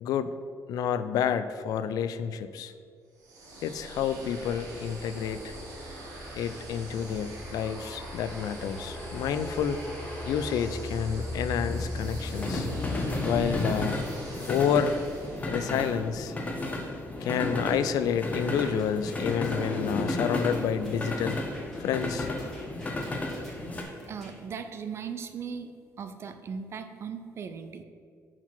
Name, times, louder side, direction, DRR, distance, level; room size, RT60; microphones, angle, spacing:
voice 1, 0.0-0.3 0.7-2.7 3.6-5.6 6.4-9.8 10.3-12.7 13.2-14.1 14.5-14.9 15.5-16.3 17.2-21.4 21.8-22.3, left 8 dB, 80° left, 12 dB, 0.4 m, -29 dB
sound 1, 3.2-15.8, right 2 dB, 80° right, 1.6 m, -43 dB
sound 2, 4.3-23.8, left 2 dB, 25° left, 0.8 m, -33 dB
sound 3, 18.6-24.3, equal, 5° left, 1.7 m, -49 dB
voice 2, 24.1-25.7 26.0-27.8, right 6 dB, 45° right, 9 dB, 0.5 m, -38 dB
6.0 x 4.5 x 5.9 m, 2.2 s
cardioid pair, 145°, 6 cm